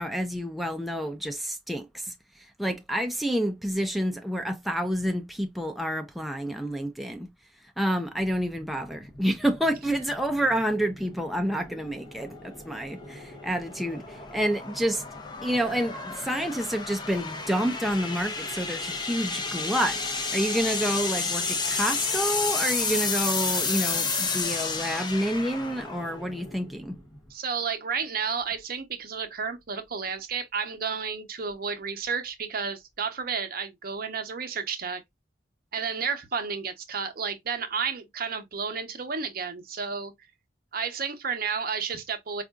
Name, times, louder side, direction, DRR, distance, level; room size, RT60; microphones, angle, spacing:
voice 1, 0.0-7.3 7.8-15.0 15.4-27.0, equal, ahead, 0.3 m, -29 dB
sound 1, 8.2-27.3, left 4 dB, 25° left, 0.7 m, -32 dB
voice 2, 27.3-35.0 35.7-40.1 40.7-42.4, right 6 dB, 55° right, 0.7 m, -31 dB
4.4 x 2.5 x 2.3 m
head